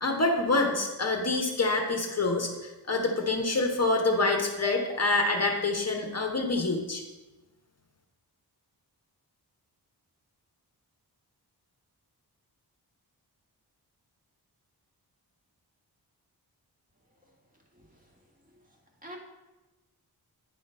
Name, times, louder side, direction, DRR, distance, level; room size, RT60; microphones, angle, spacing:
voice 1, 0.0-7.0, left 2 dB, 40° left, 2 dB, 0.9 m, -26 dB
voice 2, 17.8-18.2 18.5-18.6 19.0-19.2, equal, 20° right, -1 dB, 1.4 m, -48 dB
9.6 x 3.7 x 5.4 m, 1.1 s
wide cardioid pair, 145°, 40 cm